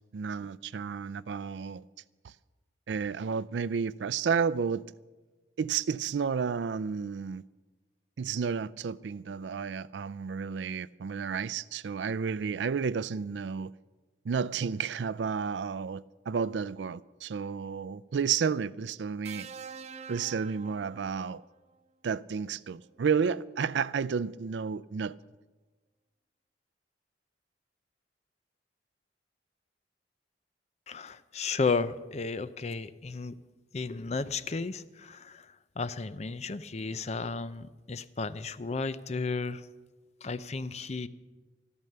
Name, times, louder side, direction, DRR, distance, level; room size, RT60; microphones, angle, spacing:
voice 1, 0.1-1.8 2.2-2.3 2.9-4.8 5.6-7.4 8.2-13.7 14.2-19.5 20.1-21.4 22.0-25.2, right 6 dB, 85° right, 0.4 m, -31 dB
sound 1, 19.2-21.5 22.8-23.0, right 6 dB, 40° right, 0.6 m, -46 dB
voice 2, 30.9-33.3 33.7-39.6 40.2-41.1, left 4 dB, 40° left, 0.5 m, -33 dB
13.0 x 12.5 x 6.7 m
head